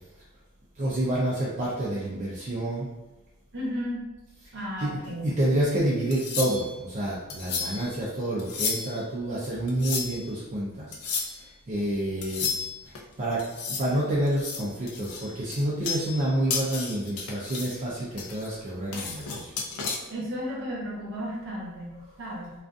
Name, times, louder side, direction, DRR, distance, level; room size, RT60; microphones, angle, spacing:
voice 1, 0.8-2.9 4.8-5.0 5.2-12.6 12.9-13.4 13.7-19.5, right 1 dB, 35° right, -7 dB, 0.4 m, -28 dB
voice 2, 3.5-4.0 4.5-5.3 20.1-22.5, equal, 55° right, -4 dB, 0.8 m, -34 dB
sound 1, 6.1-6.8 7.3-7.9 8.4-9.0 9.7-10.3 10.9-11.4 12.2-13.0 13.4-13.9 14.3-16.2 16.5-17.8 18.2-20.0, left 5 dB, 90° left, 0.4 m, -33 dB
2.4 x 2.3 x 2.5 m, 1.1 s
head